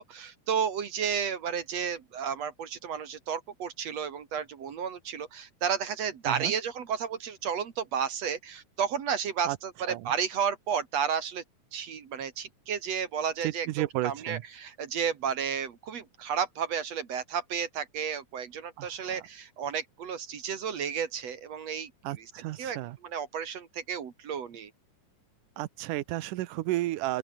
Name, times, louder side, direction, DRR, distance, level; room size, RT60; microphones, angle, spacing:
voice 1, 0.0-11.4 11.7-13.7 14.0-21.9 22.2-22.3 22.6-22.8 23.0-24.7, right 7 dB, 55° right, 2.9 m, -32 dB
voice 2, 13.4-14.4 18.8-19.2 22.0-23.0 25.6-27.2, right 16 dB, 90° right, 2.4 m, -32 dB
open air
omnidirectional pair, 3.6 m